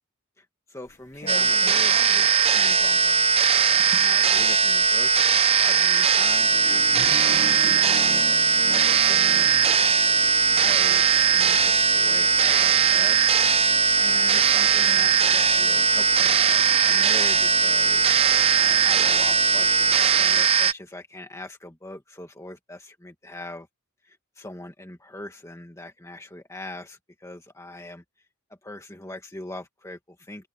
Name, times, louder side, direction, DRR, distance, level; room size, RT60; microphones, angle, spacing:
voice 1, 0.4-10.2 10.5-23.7 24.0-28.0 28.5-30.5, left 1 dB, 15° left, 1.9 m, -42 dB
sound 1, 0.9-20.5, left 2 dB, 35° left, 1.7 m, -41 dB
sound 2, 1.3-20.7, right 6 dB, 30° right, 0.8 m, -19 dB
open air
head